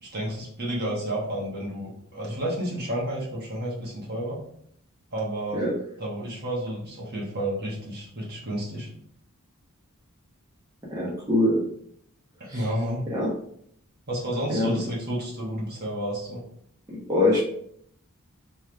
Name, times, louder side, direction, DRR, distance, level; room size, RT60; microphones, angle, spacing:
voice 1, 0.0-4.4 5.1-5.6 6.0-8.9 12.5-13.0 14.1-16.4, right 1 dB, 45° right, -4 dB, 1.3 m, -31 dB
voice 2, 10.9-11.6 12.5-12.6 13.1-13.3 14.5-14.8 16.9-17.4, left 2 dB, 15° right, -7 dB, 0.9 m, -23 dB
3.5 x 3.2 x 3.3 m, 0.67 s
head